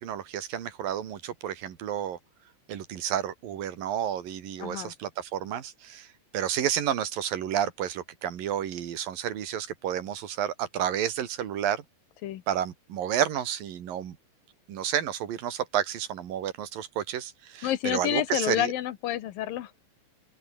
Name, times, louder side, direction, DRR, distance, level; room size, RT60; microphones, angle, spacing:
voice 1, 0.0-2.2 2.7-6.1 6.3-11.8 12.5-14.2 14.7-18.7, right 10 dB, 75° right, 3.9 m, -31 dB
voice 2, 4.6-4.9 12.2-12.4 17.6-19.8, left 13 dB, 80° left, 3.0 m, -29 dB
open air
omnidirectional pair, 4.0 m